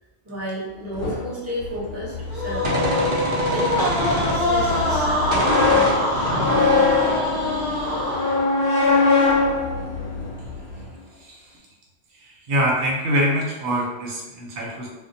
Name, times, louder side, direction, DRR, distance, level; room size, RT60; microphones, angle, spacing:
voice 1, 0.2-2.9 3.4-3.9 4.3-5.9 6.3-6.9, equal, 15° right, -9 dB, 0.7 m, -32 dB
sound 1, 0.9-10.9, left 3 dB, 65° left, 0.7 m, -23 dB
Gunshot gunfire, 2.2-5.1 5.3-8.0, right 1 dB, 60° right, 0.7 m, -28 dB
sound 2, 2.3-8.6, left 1 dB, 30° left, 0.5 m, -24 dB
voice 2, 12.5-14.9, equal, 90° right, -3 dB, 0.9 m, -24 dB
2.2 x 2.1 x 2.6 m, 1.1 s
omnidirectional pair, 1.2 m